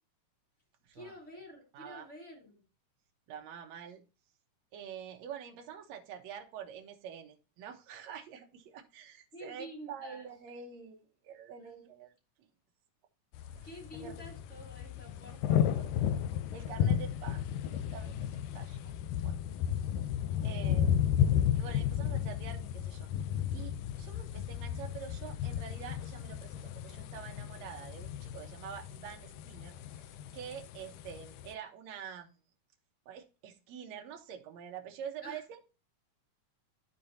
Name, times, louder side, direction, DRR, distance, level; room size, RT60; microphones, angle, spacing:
voice 1, 0.9-2.6 9.3-10.3 11.6-11.7 13.6-16.0 35.2-35.4, equal, 25° left, -1 dB, 2.7 m, -49 dB
voice 2, 1.7-2.1 3.3-4.0 4.7-12.1 13.4-13.7 13.9-14.1 16.5-18.9 19.2-19.4 20.4-21.2 21.6-23.1 23.5-32.4 33.1-35.6, right 8 dB, 65° right, 4 dB, 2.2 m, -47 dB
sound 1, 13.3-31.5, left 9 dB, 80° left, 2.0 m, -33 dB
13.5 x 4.6 x 2.7 m, 0.32 s
omnidirectional pair, 3.7 m